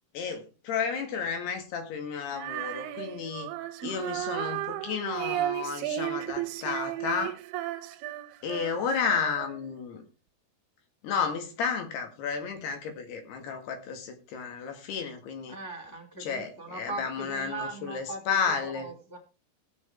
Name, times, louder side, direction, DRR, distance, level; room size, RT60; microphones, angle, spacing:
voice 1, 0.1-3.5 3.8-7.4 8.4-10.0 11.0-15.6 16.2-18.9, left 6 dB, 75° left, 5 dB, 3.9 m, -32 dB
Female singing, 2.3-9.7, right 13 dB, 85° right, 2.7 m, -34 dB
voice 2, 15.5-19.2, right 3 dB, 5° left, -1 dB, 2.1 m, -40 dB
17.5 x 6.3 x 4.5 m, 0.32 s
omnidirectional pair, 4.7 m